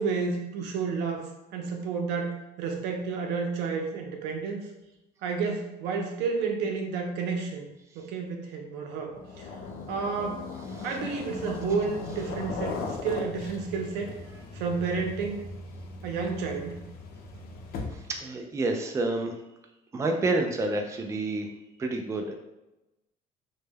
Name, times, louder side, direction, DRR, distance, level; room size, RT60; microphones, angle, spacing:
voice 1, 0.0-4.7 5.2-7.6 7.9-9.5 9.9-10.5 10.8-14.2 14.5-15.4 16.0-16.8, right 5 dB, 90° right, 2 dB, 0.5 m, -31 dB
sound 1, 9.1-18.2, left 3 dB, 65° left, 0.5 m, -38 dB
voice 2, 17.9-19.4 19.9-21.5 21.8-22.3, right 2 dB, 20° right, 3 dB, 0.3 m, -29 dB
2.1 x 2.1 x 3.3 m, 0.94 s
cardioid pair, 110°, 17 cm